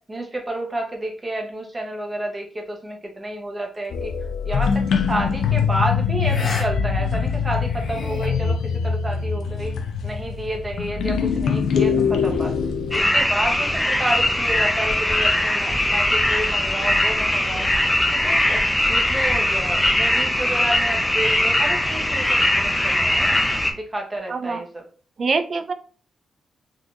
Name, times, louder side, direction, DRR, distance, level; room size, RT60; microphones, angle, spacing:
voice 1, 0.1-4.1 4.4-9.7 10.0-12.5 12.9-17.7 18.1-23.4 23.7-24.8, right 1 dB, 25° right, 1 dB, 1.0 m, -30 dB
sound 1, 3.9-13.0, left 6 dB, 80° left, 0.4 m, -23 dB
sound 2, 4.6-4.9 6.2-6.7 7.0-7.1 7.6-8.3, left 3 dB, 60° left, 0.8 m, -32 dB
sound 3, 12.9-23.7, left 1 dB, 15° left, 0.6 m, -20 dB
voice 2, 24.3-24.6 25.2-25.7, right 4 dB, 50° right, 9 dB, 0.4 m, -24 dB
3.8 x 2.7 x 2.4 m, 0.42 s
cardioid pair, 75°, 0 cm